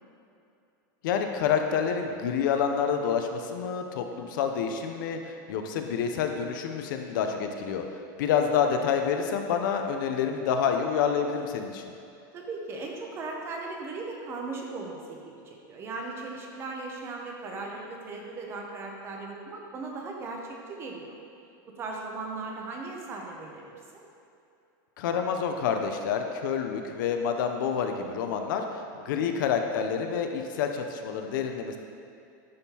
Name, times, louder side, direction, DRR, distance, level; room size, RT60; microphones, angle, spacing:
voice 1, 1.0-7.8 8.2-11.8 25.0-28.6 28.9-31.8, left 7 dB, 70° left, 5 dB, 0.5 m, -28 dB
voice 2, 12.3-21.1 21.7-24.0 29.1-29.5, right 3 dB, 25° right, 1 dB, 0.6 m, -38 dB
10.0 x 3.6 x 2.8 m, 2.6 s
supercardioid pair, 165°, 11 cm